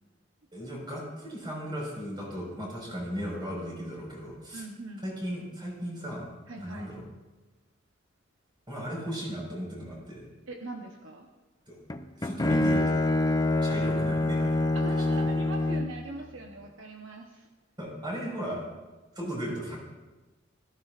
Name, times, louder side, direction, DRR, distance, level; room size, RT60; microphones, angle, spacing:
voice 1, 0.5-4.6 5.0-6.3 6.6-7.0 8.7-10.3 11.7-11.8 12.2-13.0 13.6-14.6 17.8-18.6 19.1-19.8, equal, 25° right, -4 dB, 5.0 m, -36 dB
voice 2, 4.5-5.1 6.5-6.9 10.5-11.3 14.7-17.5, right 3 dB, 70° right, 2 dB, 1.0 m, -41 dB
Bowed string instrument, 11.9-16.0, left 2 dB, 20° left, 0.6 m, -26 dB
18.5 x 15.0 x 2.5 m, 1.2 s
head